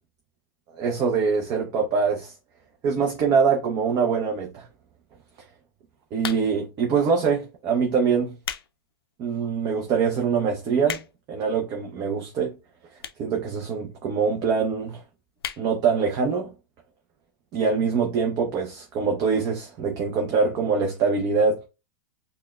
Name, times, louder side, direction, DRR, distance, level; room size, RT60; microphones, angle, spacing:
voice 1, 0.7-2.3 2.8-4.7 6.1-8.3 9.2-11.0 11.3-12.6 13.2-15.0 15.6-16.5 17.5-21.6, right 5 dB, 30° right, 0.7 m, -24 dB
sound 1, 6.2-6.7 7.5-7.7 8.2-8.7 9.1-9.2 9.9-10.0 10.1-10.2 10.5-11.3 12.1-12.2 13.0-13.3 13.6-13.7 13.9-14.0 14.2-14.3 14.6-14.9 15.4-15.7 16.1-16.2 16.3-16.4, left 9 dB, 80° left, 0.5 m, -34 dB
5.7 x 2.2 x 2.3 m
hypercardioid pair, 130°, 12 cm